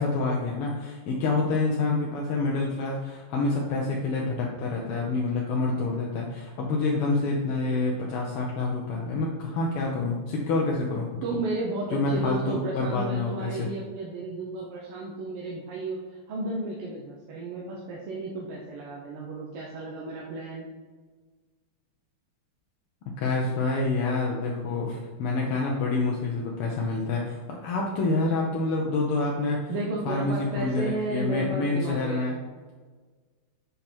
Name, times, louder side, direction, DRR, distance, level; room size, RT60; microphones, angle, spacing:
voice 1, 0.0-11.1 11.9-13.7 23.2-29.6 30.1-32.4, left 3 dB, 85° left, -2 dB, 1.9 m, -27 dB
voice 2, 11.2-20.7 29.7-32.3, right 2 dB, 85° right, -3 dB, 1.9 m, -33 dB
7.4 x 5.4 x 4.4 m, 1.4 s
omnidirectional pair, 2.4 m